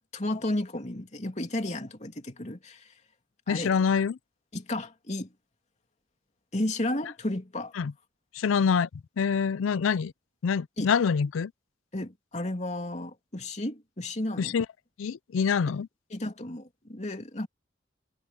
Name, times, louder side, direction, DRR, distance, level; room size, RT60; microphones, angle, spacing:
voice 1, 0.0-2.9 3.5-3.8 4.5-5.3 6.5-7.7 10.8-10.9 11.9-14.6 16.1-17.5, left 1 dB, 35° left, 2.8 m, -33 dB
voice 2, 3.5-4.2 7.8-7.9 8.3-8.9 9.2-10.1 10.4-11.5 14.4-14.7 15.0-15.9, left 6 dB, 90° left, 0.4 m, -25 dB
head